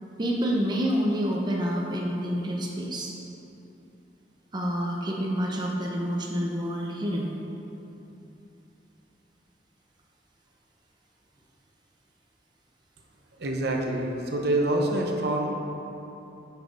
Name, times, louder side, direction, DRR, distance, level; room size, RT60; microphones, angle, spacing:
voice 1, 0.2-3.2 4.5-7.3, equal, 25° right, -2 dB, 0.6 m, -28 dB
voice 2, 13.4-15.5, right 1 dB, 65° right, 1 dB, 0.8 m, -26 dB
7.9 x 4.1 x 5.1 m, 2.9 s
head